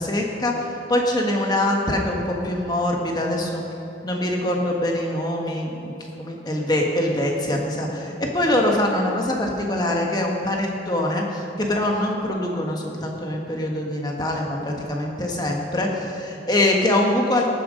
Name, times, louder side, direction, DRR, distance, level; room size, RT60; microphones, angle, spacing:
voice 1, 0.0-3.6 4.0-5.9 6.2-17.5, left 1 dB, 25° left, 0 dB, 1.4 m, -23 dB
18.5 x 7.6 x 5.2 m, 3.0 s
head